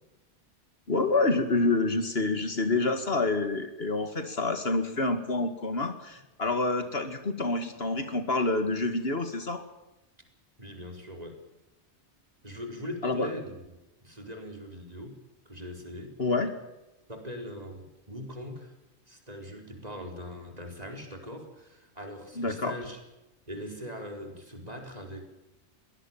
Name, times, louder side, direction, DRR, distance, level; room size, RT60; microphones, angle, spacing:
voice 1, 0.9-9.6 13.0-13.3 16.2-16.5 22.4-22.8, left 3 dB, 60° left, 8 dB, 2.3 m, -27 dB
voice 2, 10.6-11.4 12.4-13.7 14.0-15.2 15.4-16.1 17.1-18.7 19.1-23.0 23.5-25.2, equal, 35° right, 4 dB, 4.4 m, -41 dB
22.5 x 18.5 x 7.3 m, 0.97 s
omnidirectional pair, 1.2 m